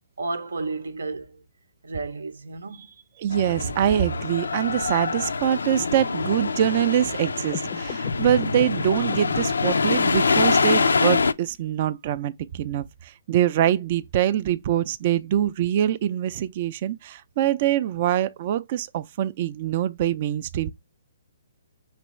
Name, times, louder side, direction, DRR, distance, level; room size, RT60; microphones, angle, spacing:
voice 1, 0.2-1.4 1.8-3.0, right 3 dB, 85° right, 0.6 m, -32 dB
voice 2, 3.2-20.7, right 11 dB, 45° right, 0.3 m, -24 dB
sound 1, 3.3-11.3, left 4 dB, 90° left, 0.3 m, -24 dB
sound 2, 7.4-10.4, left 8 dB, 25° left, 0.4 m, -39 dB
5.3 x 3.3 x 3.0 m
hypercardioid pair, 145°, 0 cm